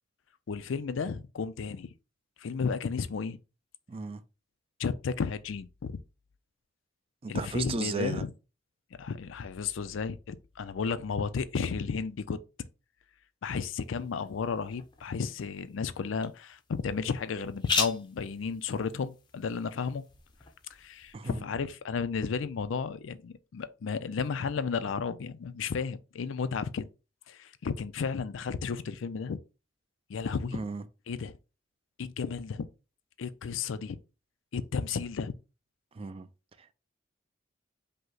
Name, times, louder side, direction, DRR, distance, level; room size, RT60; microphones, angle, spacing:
voice 1, 0.5-1.9 2.4-3.4 4.8-6.0 7.3-8.3 9.0-12.4 13.4-20.0 20.7-26.9 27.3-29.4 30.1-30.6 31.1-31.3 32.0-32.7 33.2-34.0 34.5-35.3, left 5 dB, 90° left, 0.4 m, -33 dB
voice 2, 3.9-4.2 7.2-8.2 21.1-21.4 30.5-30.8 35.9-36.3 36.6-36.7, right 4 dB, 30° right, 0.4 m, -35 dB
sound 1, 13.6-21.1, left 5 dB, 25° left, 0.5 m, -39 dB
5.3 x 2.1 x 3.8 m
head